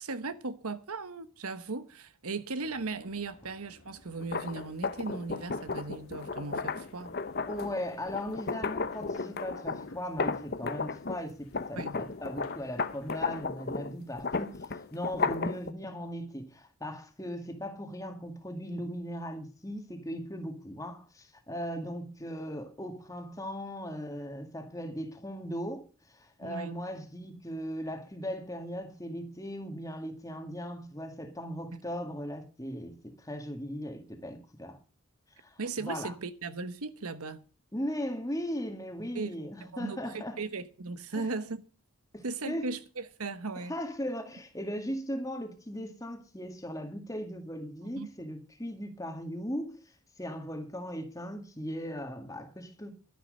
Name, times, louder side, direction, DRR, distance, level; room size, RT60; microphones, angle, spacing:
voice 1, 0.0-7.2 11.8-12.0 26.4-26.8 31.7-31.8 35.6-37.4 39.1-39.4 39.6-41.6 42.2-43.7 48.0-48.1, right 3 dB, 80° right, 1.1 m, -37 dB
sound 1, 2.6-13.5, left 2 dB, 75° left, 2.4 m, -57 dB
sound 2, 4.2-11.2 11.5-15.7, left 4 dB, 45° left, 0.8 m, -34 dB
voice 2, 7.5-34.8 35.4-36.1 37.7-40.4 41.1-41.3 42.1-42.7 43.7-49.8 50.2-52.9, equal, 15° left, 1.9 m, -38 dB
12.0 x 10.5 x 6.4 m
head